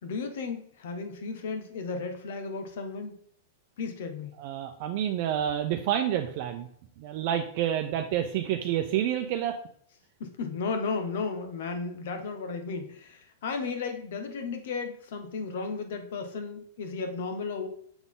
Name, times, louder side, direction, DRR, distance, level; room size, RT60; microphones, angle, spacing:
voice 1, 0.0-3.2 3.8-4.3 10.2-17.7, left 4 dB, 70° left, 6 dB, 1.2 m, -34 dB
voice 2, 4.4-6.7 7.0-9.6, right 10 dB, 50° right, 5 dB, 0.6 m, -28 dB
6.9 x 4.0 x 3.7 m, 0.62 s
hypercardioid pair, 140°, 0 cm